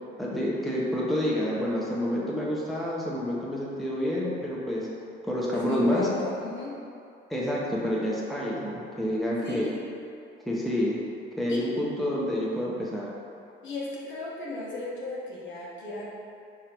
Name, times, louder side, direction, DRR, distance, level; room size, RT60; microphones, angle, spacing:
voice 1, 0.2-4.9 5.2-6.1 7.3-9.7 10.5-11.0 11.4-13.1, left 1 dB, ahead, -6 dB, 0.8 m, -28 dB
voice 2, 5.5-6.8 9.4-9.8 11.5-11.6 13.6-16.1, left 2 dB, 70° left, -6 dB, 1.2 m, -35 dB
4.9 x 3.7 x 2.9 m, 2.5 s
cardioid pair, 90°, 20 cm